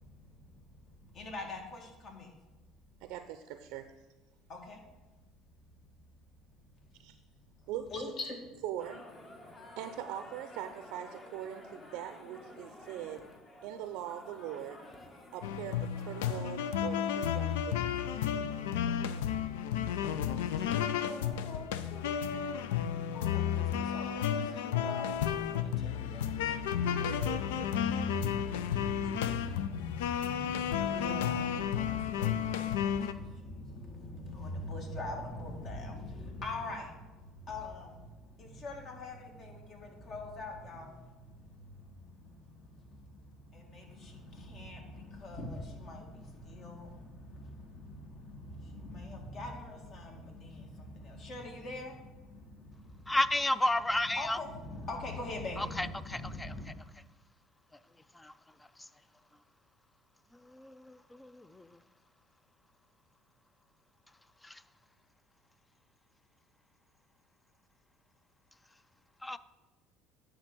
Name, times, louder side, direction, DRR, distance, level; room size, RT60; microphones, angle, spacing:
voice 1, 0.0-2.3 2.7-2.9 4.5-4.9 5.3-5.4 5.7-5.9 6.3-8.4 20.6-53.3 53.8-56.7, left 2 dB, 50° left, 1 dB, 2.1 m, -44 dB
voice 2, 3.0-3.9 7.0-7.2 7.7-7.9 8.6-9.1 9.8-13.2 13.6-14.8 15.3-18.3 27.0-27.7, right 11 dB, 75° right, 9 dB, 0.5 m, -42 dB
sound 1, 8.8-16.4, left 2 dB, 30° left, 1.3 m, -52 dB
sound 2, 15.4-33.1, left 9 dB, 90° left, 0.4 m, -32 dB
voice 3, 53.1-54.4 55.8-55.9 58.2-58.3 60.6-60.7 61.2-61.4 69.2-69.4, left 1 dB, 10° left, 15 dB, 0.4 m, -29 dB
9.9 x 3.8 x 6.2 m, 1.1 s
supercardioid pair, 90°, 0 cm